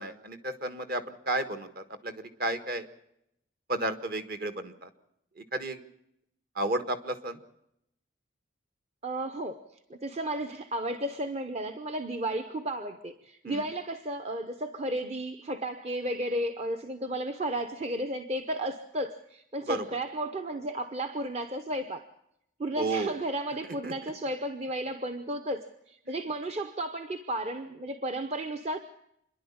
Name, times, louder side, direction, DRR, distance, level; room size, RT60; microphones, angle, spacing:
voice 1, 0.0-2.9 3.7-4.9 5.4-5.8 6.5-7.4 13.4-13.7 19.7-19.9 22.8-23.1 23.8-23.9 26.1-26.2, right 2 dB, 50° right, 9 dB, 1.5 m, -32 dB
voice 2, 9.0-22.1 22.6-28.8, right 1 dB, 30° right, 7 dB, 0.8 m, -33 dB
27.0 x 11.0 x 8.7 m, 0.78 s
head